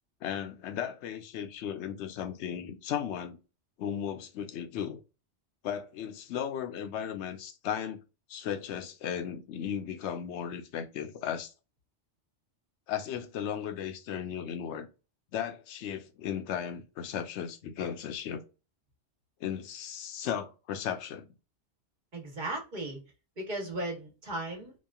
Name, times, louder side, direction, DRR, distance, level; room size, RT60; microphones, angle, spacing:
voice 1, 0.2-3.4 3.8-5.0 5.6-8.0 8.3-11.5 12.9-14.9 15.3-18.4 19.4-21.3, left 9 dB, 70° left, 0.8 m, -36 dB
voice 2, 22.1-23.0 23.4-24.7, right 2 dB, 45° right, 1.0 m, -36 dB
2.9 x 2.3 x 2.2 m
omnidirectional pair, 1.3 m